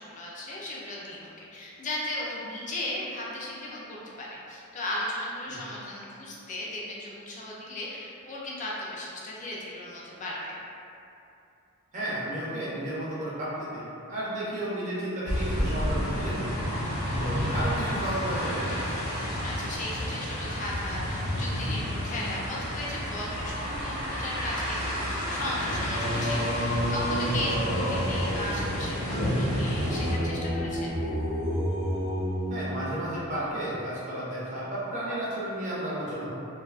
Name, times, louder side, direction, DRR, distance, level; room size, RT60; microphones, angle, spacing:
voice 1, 0.0-10.6 19.4-31.0, left 1 dB, 35° left, -5 dB, 0.4 m, -36 dB
voice 2, 11.9-16.5 17.2-19.0 26.0-26.3 32.5-36.3, right 1 dB, 35° right, -9 dB, 0.6 m, -33 dB
sound 1, 15.3-30.2, equal, 75° left, 0.7 m, -30 dB
Singing, 25.9-33.3, equal, 75° right, 0.7 m, -30 dB
2.6 x 2.3 x 2.3 m, 2.8 s
head